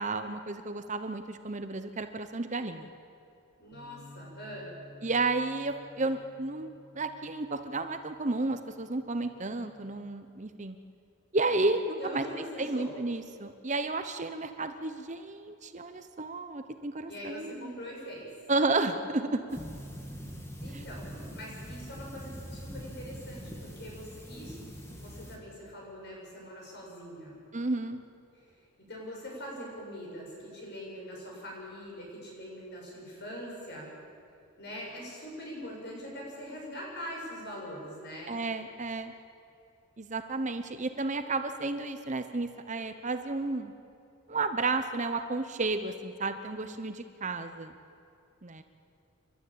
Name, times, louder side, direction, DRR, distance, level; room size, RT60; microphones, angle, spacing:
voice 1, 0.0-2.9 5.0-6.7 6.9-10.8 11.3-17.7 18.5-19.4 20.7-20.8 27.5-28.0 38.3-39.1 40.0-43.7 44.3-47.7 48.4-48.6, right 3 dB, 35° right, 9 dB, 0.9 m, -32 dB
voice 2, 3.6-4.7 11.9-13.0 17.1-18.3 20.6-21.1 21.3-24.7 24.9-27.4 28.3-28.6 28.9-33.9 34.6-38.4, equal, 50° left, -2 dB, 7.0 m, -43 dB
sound 1, 3.7-10.0, equal, 60° right, 5.0 m, -55 dB
sound 2, 19.5-25.4, equal, 10° left, 2.3 m, -43 dB
29.0 x 12.5 x 8.7 m, 2.6 s
head